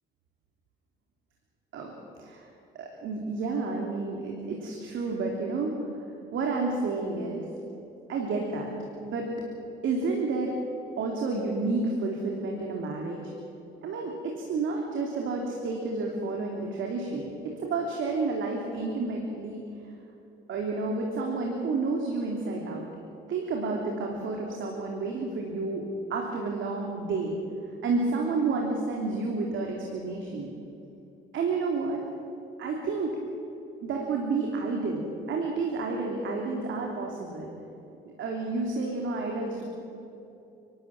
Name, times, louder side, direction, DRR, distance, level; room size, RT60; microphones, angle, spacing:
voice 1, 2.7-5.9 6.3-7.4 8.1-8.7 9.0-9.3 9.8-10.6 11.0-13.2 13.8-19.6 20.5-22.9 23.3-27.4 27.8-30.5 31.3-32.0 32.6-33.2 33.8-37.5 38.2-39.6, right 3 dB, 75° right, 0 dB, 3.1 m, -30 dB
29.5 x 12.5 x 8.8 m, 2.8 s
cardioid pair, 90°, 20 cm